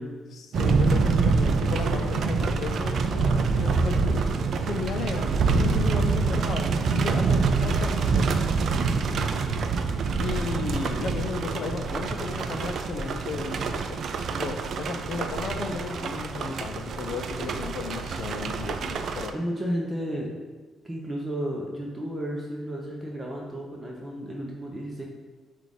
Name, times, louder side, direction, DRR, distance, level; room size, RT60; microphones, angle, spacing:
voice 1, 0.3-8.3 10.2-14.0 14.3-19.3, left 5 dB, 65° left, 6 dB, 0.5 m, -34 dB
sound 1, 0.5-19.3, right 4 dB, 60° right, 0.3 m, -26 dB
voice 2, 8.7-9.4 18.3-18.6 19.3-20.3 20.8-25.0, equal, 20° right, -2 dB, 0.7 m, -33 dB
5.7 x 2.4 x 3.6 m, 1.3 s
cardioid pair, 90°, 0 cm